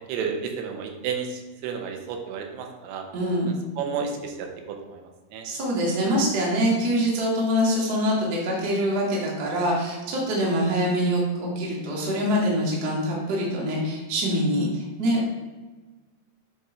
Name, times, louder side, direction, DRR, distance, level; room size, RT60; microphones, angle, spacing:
voice 1, 0.1-3.0 3.8-5.5, right 6 dB, 85° right, 3 dB, 2.8 m, -32 dB
voice 2, 3.1-3.5 5.4-15.3, equal, 60° right, -4 dB, 1.0 m, -24 dB
7.7 x 3.1 x 4.9 m, 1.3 s
omnidirectional pair, 4.6 m